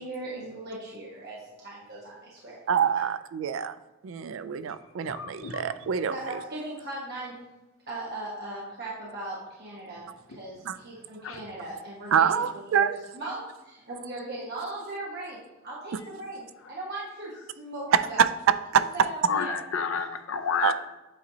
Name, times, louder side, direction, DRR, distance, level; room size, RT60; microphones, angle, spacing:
voice 1, 0.0-2.6 6.1-7.4 7.9-18.2 18.9-19.6, right 2 dB, 55° right, -5 dB, 1.2 m, -38 dB
voice 2, 2.7-3.7 4.0-6.1 10.7-10.8 12.1-13.0 17.9-18.3 18.7-18.9 20.6-20.7, right 8 dB, 75° right, 13 dB, 0.3 m, -25 dB
voice 3, 5.0-5.6 11.2-11.4 19.3-20.7, left 6 dB, 80° left, 7 dB, 0.6 m, -30 dB
8.5 x 4.1 x 2.8 m, 1.1 s
head